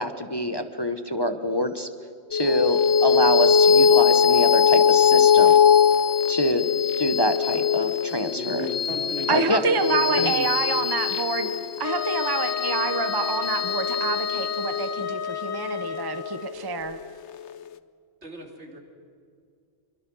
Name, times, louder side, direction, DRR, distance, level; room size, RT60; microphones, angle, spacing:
voice 1, 0.0-1.9 2.3-5.5 6.3-6.6 7.0-8.7 9.3-9.6 10.2-10.3, equal, 25° left, 7 dB, 0.9 m, -26 dB
sound 1, 2.3-17.1, left 7 dB, 85° left, 1.1 m, -21 dB
voice 2, 8.3-10.7 11.4-11.5 18.2-18.8, right 1 dB, 75° right, 1 dB, 3.3 m, -36 dB
voice 3, 9.3-11.5 11.8-17.0, right 5 dB, 20° right, 9 dB, 0.9 m, -27 dB
Wind instrument woodwind instrument, 11.8-16.5, left 6 dB, 50° left, 1.1 m, -32 dB
25.5 x 23.5 x 6.2 m, 2.3 s
omnidirectional pair, 1.1 m